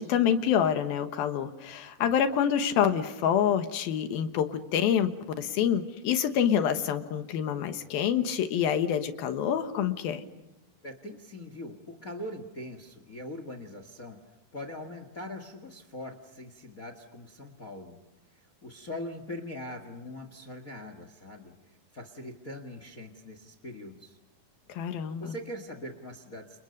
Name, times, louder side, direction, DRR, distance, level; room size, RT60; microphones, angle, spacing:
voice 1, 0.0-10.2 24.7-25.3, left 9 dB, 80° left, 8 dB, 3.2 m, -27 dB
voice 2, 10.8-14.2 14.5-18.0 18.3-24.2 25.2-26.6, left 1 dB, 40° left, 8 dB, 1.2 m, -42 dB
29.5 x 29.0 x 5.3 m, 0.95 s
omnidirectional pair, 4.2 m